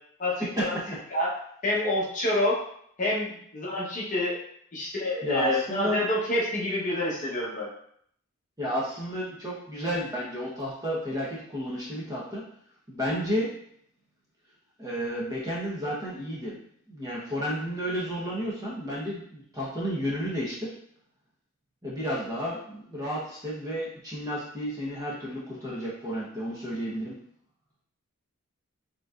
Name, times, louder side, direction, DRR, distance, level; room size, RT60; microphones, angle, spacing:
voice 1, 0.2-0.8 1.1-1.3 1.6-2.6 3.0-4.4 4.7-7.8, left 1 dB, 35° left, -5 dB, 1.1 m, -27 dB
voice 2, 5.2-6.0 8.6-12.5 12.9-13.5 14.8-16.6 16.9-20.7 21.8-27.2, equal, 15° right, -6 dB, 1.1 m, -32 dB
5.0 x 3.1 x 2.5 m, 0.66 s
head